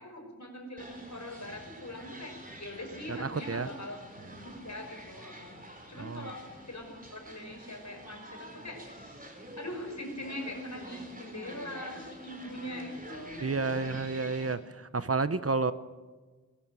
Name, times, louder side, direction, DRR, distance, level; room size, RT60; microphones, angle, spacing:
voice 1, 0.0-6.8 7.1-13.8, left 1 dB, 70° left, 2 dB, 5.6 m, -42 dB
sound 1, 0.8-14.6, right 1 dB, 30° right, 3.8 m, -48 dB
voice 2, 3.1-3.7 6.0-6.3 13.4-15.7, right 4 dB, 55° right, 14 dB, 0.9 m, -31 dB
22.0 x 14.5 x 9.0 m, 1.4 s
wide cardioid pair, 55°, 29 cm